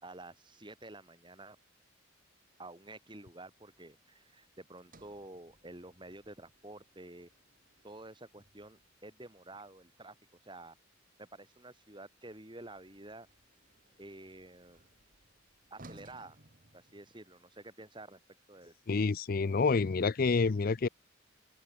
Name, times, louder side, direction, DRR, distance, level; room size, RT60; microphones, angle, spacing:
voice 1, 0.0-1.6 2.6-7.3 7.8-10.2 10.4-10.8 11.2-13.3 14.0-14.8 15.7-16.4 16.7-18.2 18.5-18.7, right 2 dB, 20° right, 3.6 m, -50 dB
Sliding door, 4.8-9.0 12.5-17.5, right 2 dB, 40° right, 2.5 m, -61 dB
voice 2, 18.9-20.9, left 4 dB, 45° left, 0.4 m, -28 dB
head